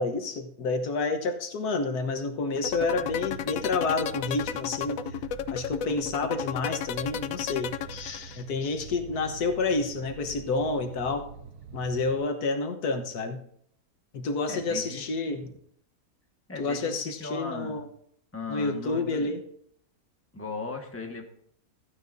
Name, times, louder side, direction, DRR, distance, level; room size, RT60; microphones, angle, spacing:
voice 1, 0.0-5.0 5.5-11.3 11.7-13.4 14.1-15.5 16.6-17.9 18.5-19.4, left 3 dB, 90° left, 6 dB, 1.6 m, -29 dB
sound 1, 2.6-8.5, left 9 dB, 70° left, 0.9 m, -32 dB
sound 2, 2.6-12.2, right 6 dB, 85° right, 1.3 m, -45 dB
voice 2, 14.5-15.6 16.5-17.8 18.3-19.4 20.3-21.3, left 3 dB, 10° left, 2 dB, 1.4 m, -38 dB
14.5 x 9.8 x 2.7 m, 0.66 s
omnidirectional pair, 1.6 m